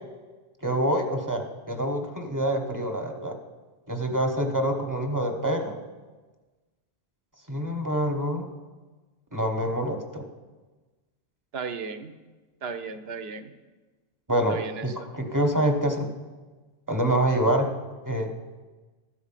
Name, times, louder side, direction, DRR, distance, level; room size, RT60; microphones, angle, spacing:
voice 1, 0.6-3.3 3.9-5.8 7.5-8.5 9.3-10.2 14.3-14.6 14.8-16.1 16.9-17.7 18.1-18.3, right 1 dB, 20° right, 3 dB, 0.9 m, -26 dB
voice 2, 11.5-12.1 12.6-13.5 14.5-15.1, right 5 dB, 70° right, 9 dB, 0.9 m, -35 dB
13.0 x 4.5 x 7.4 m, 1.3 s
omnidirectional pair, 1.1 m